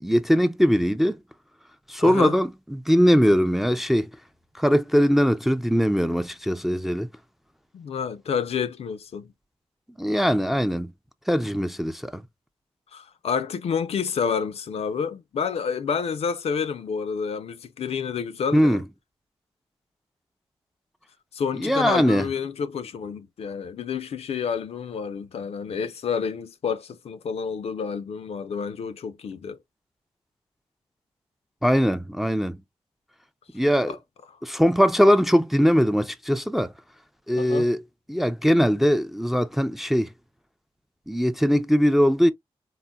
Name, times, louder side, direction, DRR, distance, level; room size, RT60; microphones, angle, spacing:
voice 1, 0.0-1.2 1.9-4.1 4.6-7.1 10.0-10.9 11.3-12.2 18.5-18.8 21.5-22.3 31.6-32.6 33.5-33.9 34.4-36.7 37.3-37.8 38.1-40.1 41.1-42.3, equal, ahead, 0.3 m, -21 dB
voice 2, 2.0-2.4 7.7-9.3 12.9-18.8 21.3-29.6 33.9-34.0 37.4-37.7, left 6 dB, 70° left, 0.4 m, -29 dB
3.8 x 2.1 x 2.2 m
cardioid pair, 80°, 11 cm